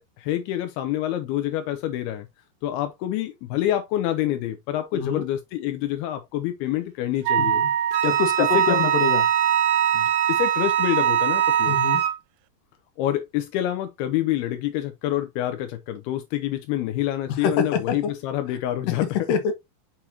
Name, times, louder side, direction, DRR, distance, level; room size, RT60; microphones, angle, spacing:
voice 1, 0.0-2.3 2.6-7.6 8.4-8.9 9.9-11.8 13.0-19.1, left 13 dB, 85° left, 2.2 m, -27 dB
voice 2, 4.9-5.3 7.4-7.5 8.0-9.2 11.7-12.0 17.4-18.0 19.3-19.5, left 6 dB, 65° left, 2.4 m, -25 dB
Wind instrument woodwind instrument, 7.3-12.1, right 9 dB, 90° right, 2.9 m, -22 dB
Wind instrument woodwind instrument 2, 7.9-12.2, right 11 dB, 65° right, 2.4 m, -27 dB
6.8 x 5.7 x 2.8 m
omnidirectional pair, 5.2 m